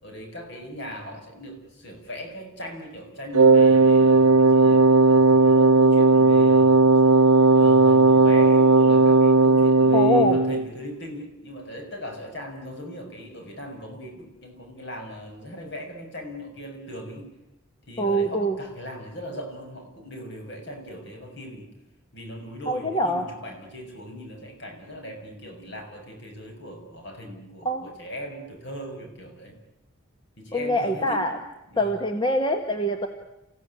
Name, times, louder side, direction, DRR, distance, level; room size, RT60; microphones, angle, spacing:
voice 1, 0.0-6.8 7.5-17.3 17.9-21.7 22.1-29.6 30.4-31.4 31.7-31.9, equal, 55° left, 3 dB, 6.5 m, -39 dB
Wind instrument woodwind instrument, 3.3-10.6, right 3 dB, 80° right, 0.9 m, -16 dB
voice 2, 9.9-10.4 18.0-18.6 22.7-23.2 27.6-27.9 30.5-31.4 31.8-33.1, equal, 20° left, 5 dB, 1.5 m, -24 dB
28.5 x 16.5 x 9.7 m, 0.95 s
head